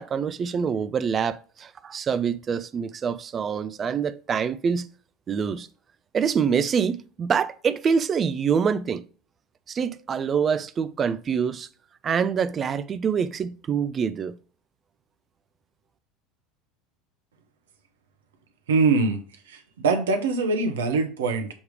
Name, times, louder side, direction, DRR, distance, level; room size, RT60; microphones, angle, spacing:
voice 1, 0.0-4.9 5.3-5.7 6.1-9.0 9.7-11.7 12.0-14.4, right 6 dB, 35° right, 0.5 m, -25 dB
voice 2, 18.7-19.2 19.5-21.5, right 4 dB, 80° right, 1.2 m, -23 dB
7.1 x 3.2 x 4.9 m
hypercardioid pair, 80°, 0 cm